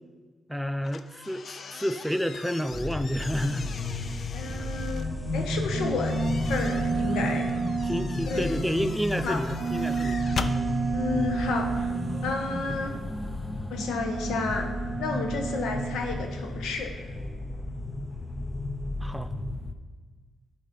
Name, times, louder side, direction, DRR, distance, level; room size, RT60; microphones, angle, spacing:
voice 1, 0.5-3.7 7.8-10.3 19.0-19.3, equal, ahead, 11 dB, 0.4 m, -30 dB
sound 1, 0.8-5.1 5.8-10.6, left 5 dB, 55° left, 0.5 m, -40 dB
sound 2, 2.7-19.7, left 1 dB, 20° left, 0.8 m, -33 dB
voice 2, 4.3-6.2 6.4-7.5 8.3-8.5 9.2-9.4 10.9-11.9 12.2-12.9 13.7-14.7 15.0-16.9, left 4 dB, 85° left, 4 dB, 1.1 m, -31 dB
sound 3, 4.6-8.9 9.6-12.9 13.8-16.6, right 6 dB, 65° right, 0.5 m, -32 dB
11.5 x 4.3 x 5.3 m, 1.4 s
cardioid pair, 70°, 0 cm